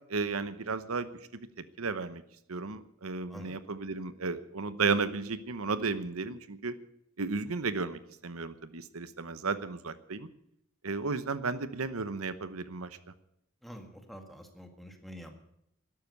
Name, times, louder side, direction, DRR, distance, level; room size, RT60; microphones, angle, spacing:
voice 1, 0.1-1.1 1.6-2.2 2.5-6.8 7.2-10.3 10.8-12.9, right 4 dB, 80° right, 13 dB, 1.0 m, -33 dB
voice 2, 13.6-15.4, equal, ahead, 4 dB, 1.8 m, -47 dB
12.5 x 12.0 x 8.2 m, 0.77 s
head